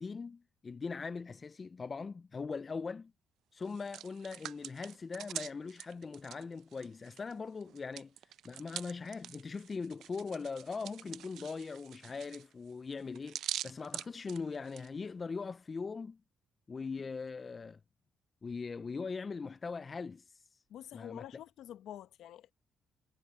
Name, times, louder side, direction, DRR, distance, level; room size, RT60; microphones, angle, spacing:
voice 1, 0.0-3.1 3.5-8.1 8.4-16.2 16.7-17.8 18.4-20.4 20.9-21.2, left 4 dB, 35° left, 0.4 m, -41 dB
Hands, 3.6-7.3 7.6-14.9, right 11 dB, 80° right, 0.5 m, -45 dB
voice 2, 20.7-22.5, left 11 dB, 80° left, 1.4 m, -48 dB
cardioid pair, 90°, 0 cm